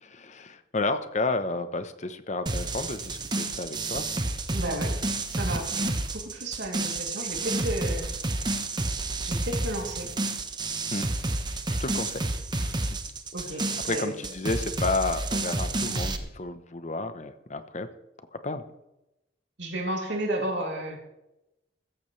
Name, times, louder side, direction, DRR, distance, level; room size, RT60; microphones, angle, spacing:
voice 1, 0.0-4.1 10.9-11.1 11.8-12.3 12.5-12.7 13.9-17.9 18.4-18.6, left 3 dB, 40° left, 10 dB, 0.9 m, -31 dB
sound 1, 2.5-16.2, right 2 dB, 25° right, 1.0 m, -30 dB
voice 2, 4.5-5.0 5.3-8.1 9.2-10.1 11.5-11.6 13.3-14.1 19.6-21.0, right 1 dB, 85° right, 0 dB, 2.9 m, -33 dB
15.5 x 14.0 x 3.3 m, 0.92 s
head